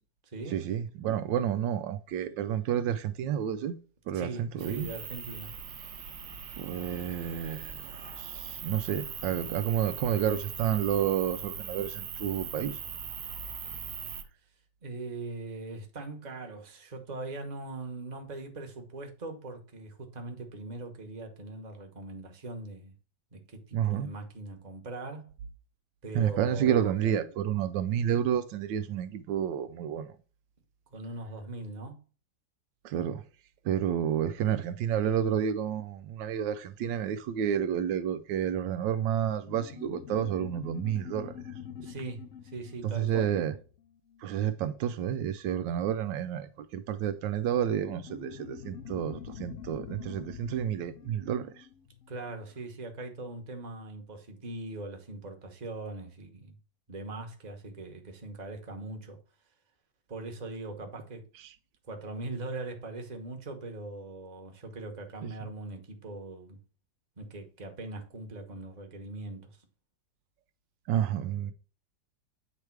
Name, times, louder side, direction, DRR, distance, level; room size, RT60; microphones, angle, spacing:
voice 1, 0.5-3.8 4.1-4.9 6.6-7.7 8.1-12.8 23.7-24.1 26.1-30.1 32.8-33.2 33.6-41.3 42.8-43.5 44.2-51.7 61.4-61.5 65.2-65.5 70.9-71.5, right 9 dB, 80° right, 1.3 m, -30 dB
voice 2, 4.1-5.5 14.8-22.9 23.3-25.4 26.0-27.0 30.9-32.0 41.8-43.3 52.1-56.5 56.9-59.2 60.1-61.3 61.8-66.6 67.2-69.5, right 2 dB, 25° right, 1.1 m, -41 dB
sound 1, 4.6-14.2, right 7 dB, 65° right, 1.3 m, -40 dB
sound 2, 39.4-44.4 47.8-52.7, left 8 dB, 60° left, 0.8 m, -46 dB
8.3 x 3.3 x 4.5 m
omnidirectional pair, 2.0 m